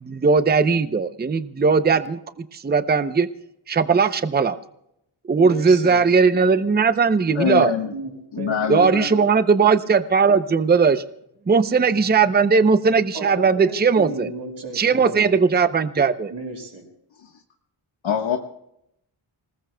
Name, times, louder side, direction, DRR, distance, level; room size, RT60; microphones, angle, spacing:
voice 1, 0.0-3.3 3.7-4.6 5.3-7.7 8.7-11.0 11.5-14.3 14.7-16.3, right 5 dB, 20° right, 11 dB, 0.6 m, -18 dB
voice 2, 5.4-6.0 7.9-9.1 13.1-15.3 16.3-16.8, right 2 dB, 55° right, 3 dB, 5.6 m, -33 dB
voice 3, 7.3-7.9 8.3-9.1 18.0-18.4, left 7 dB, 70° left, 3 dB, 1.4 m, -23 dB
27.5 x 19.5 x 2.3 m, 0.78 s
wide cardioid pair, 155°, 48 cm